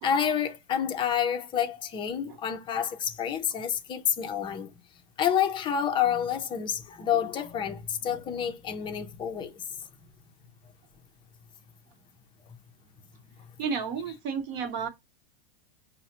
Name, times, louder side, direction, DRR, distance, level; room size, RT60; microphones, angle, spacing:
voice 1, 0.0-4.7 5.2-9.5, left 8 dB, 15° left, 0.5 m, -28 dB
voice 2, 13.6-14.9, right 6 dB, 55° right, 1.0 m, -32 dB
5.5 x 2.1 x 2.9 m
supercardioid pair, 145°, 29 cm